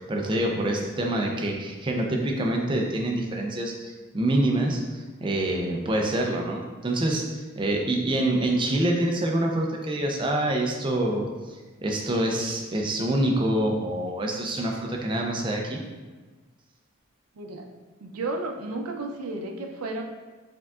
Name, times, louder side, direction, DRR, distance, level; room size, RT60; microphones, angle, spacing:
voice 1, 0.0-11.3 11.8-15.8, right 1 dB, 20° right, 0 dB, 0.5 m, -26 dB
voice 2, 17.4-17.7 18.0-20.0, right 2 dB, 85° right, 2 dB, 0.5 m, -33 dB
4.8 x 3.6 x 2.4 m, 1.3 s
head